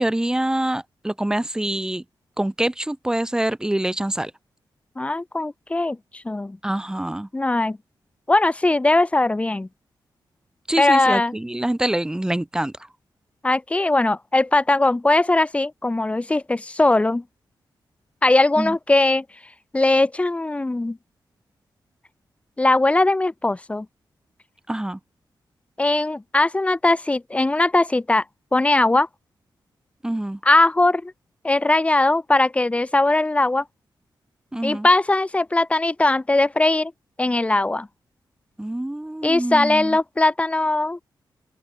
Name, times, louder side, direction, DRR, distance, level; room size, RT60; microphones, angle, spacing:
voice 1, 0.0-2.0 2.4-4.3 6.6-7.3 10.7-12.7 18.6-18.7 24.7-25.0 30.0-30.4 34.5-34.9 38.6-40.0, right 1 dB, 10° right, 4.3 m, -25 dB
voice 2, 4.9-6.6 7.3-7.8 8.3-9.7 10.8-11.4 13.4-17.2 18.2-19.2 19.7-21.0 22.6-23.9 25.8-28.2 28.5-29.1 30.4-31.1 31.4-33.6 34.6-36.9 37.2-37.9 39.2-41.0, left 2 dB, 15° left, 3.4 m, -20 dB
open air
wide cardioid pair, 170°, 8 cm